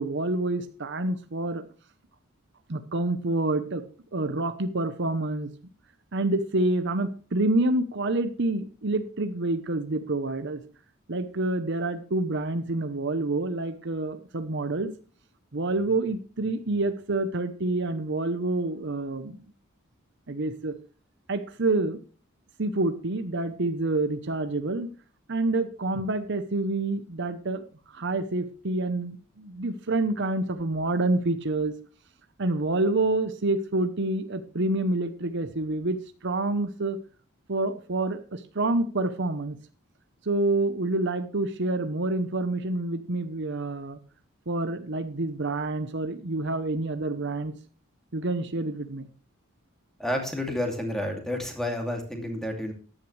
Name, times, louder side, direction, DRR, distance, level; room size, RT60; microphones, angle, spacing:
voice 1, 0.0-1.6 2.7-3.8 4.1-5.5 6.1-10.6 11.1-14.9 15.5-19.4 20.3-20.7 21.3-22.0 22.6-24.9 25.3-27.6 27.9-31.7 32.4-36.0 36.2-37.0 37.5-39.6 40.2-44.0 44.5-47.5 48.1-49.1, right 2 dB, 60° right, 10 dB, 0.9 m, -27 dB
voice 2, 50.0-52.7, left 1 dB, ahead, 2 dB, 2.7 m, -30 dB
14.0 x 10.5 x 3.3 m, 0.38 s
head